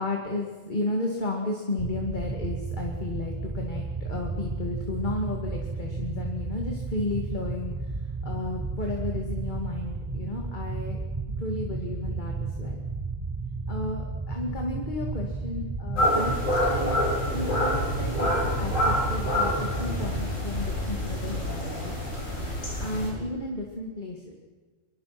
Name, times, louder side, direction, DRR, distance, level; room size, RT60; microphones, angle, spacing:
voice 1, 0.0-7.7 8.2-11.0 11.4-12.8 13.7-16.3 16.7-17.0 17.3-21.9 22.8-24.3, left 2 dB, 35° left, 1 dB, 2.7 m, -33 dB
sound 1, 1.8-20.3, right 3 dB, 20° right, 1.4 m, -33 dB
sound 2, 16.0-23.1, left 1 dB, 85° left, 8.2 m, -27 dB
25.0 x 24.5 x 6.1 m, 1.4 s
omnidirectional pair, 1.3 m